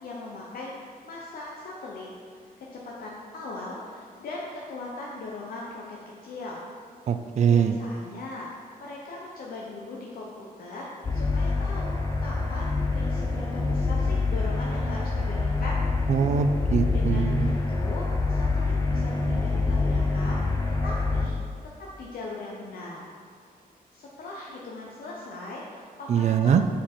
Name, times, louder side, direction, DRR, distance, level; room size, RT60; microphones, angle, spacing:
voice 1, 0.0-6.0 6.2-6.7 7.4-8.5 8.8-16.1 16.9-20.6 20.8-21.4 21.8-23.0 23.9-26.7, left 2 dB, 70° left, -4 dB, 0.8 m, -39 dB
voice 2, 7.1-7.8 16.1-17.3 26.1-26.6, right 7 dB, 50° right, 9 dB, 0.4 m, -22 dB
sound 1, 11.0-21.3, left 3 dB, 20° left, 0.6 m, -26 dB
7.2 x 4.4 x 4.4 m, 2.2 s
wide cardioid pair, 170°, 16 cm